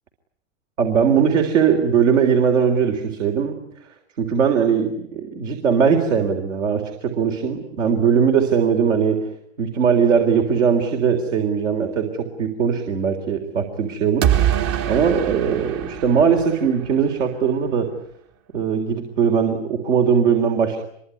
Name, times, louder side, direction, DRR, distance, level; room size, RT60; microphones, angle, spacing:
voice 1, 0.8-3.6 4.2-9.3 9.6-17.9 18.5-20.8, right 7 dB, 80° right, 4 dB, 3.6 m, -20 dB
sound 1, 14.2-17.1, right 10 dB, 45° right, 1.2 m, -23 dB
26.0 x 23.0 x 9.8 m, 0.74 s
hypercardioid pair, 110°, 37 cm